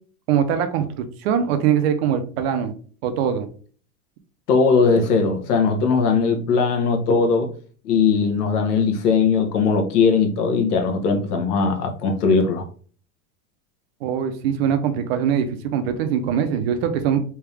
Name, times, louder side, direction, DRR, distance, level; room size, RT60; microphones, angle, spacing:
voice 1, 0.3-2.7 3.0-3.5 14.0-17.2, right 8 dB, 45° right, 0.5 m, -22 dB
voice 2, 4.5-7.5 7.8-12.6, left 5 dB, 80° left, 1.1 m, -19 dB
3.5 x 2.8 x 3.3 m
supercardioid pair, 160°, 45 cm